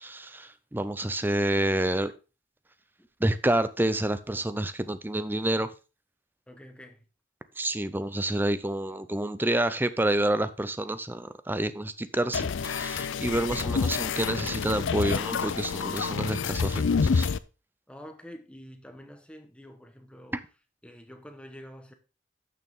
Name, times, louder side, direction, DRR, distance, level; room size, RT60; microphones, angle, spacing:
voice 1, 0.0-2.1 3.2-5.7 7.6-17.3, right 1 dB, 10° right, 0.6 m, -28 dB
voice 2, 6.5-7.0 17.9-20.4 20.8-21.9, equal, 5° left, 1.1 m, -47 dB
sound 1, 12.3-17.4, left 5 dB, 90° left, 0.5 m, -28 dB
12.0 x 6.6 x 3.6 m
head